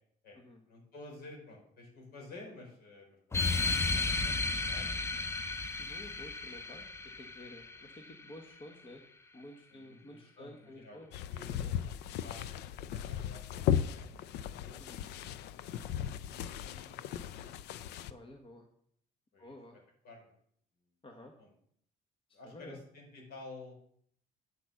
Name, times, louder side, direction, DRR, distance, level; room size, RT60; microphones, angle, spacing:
voice 1, 0.7-5.3 5.8-6.0 9.7-11.7 12.0-13.6 13.9-14.1 14.6-14.8 16.2-18.1 19.3-19.6 20.0-20.3 21.4-21.5 22.3-23.7, left 2 dB, 65° left, 0 dB, 4.7 m, -52 dB
sound 1, 3.3-8.3, left 3 dB, 15° left, 0.7 m, -34 dB
voice 2, 5.8-6.8 7.2-9.0 9.3-11.1 11.5-11.7 14.8-15.0 18.1-18.7 19.4-19.8 21.0-21.3 22.4-22.8, left 1 dB, 30° left, 3 dB, 1.4 m, -51 dB
sound 2, 11.1-18.1, left 9 dB, 80° left, 0.6 m, -36 dB
9.5 x 6.1 x 7.1 m, 0.66 s
cardioid pair, 110°, 17 cm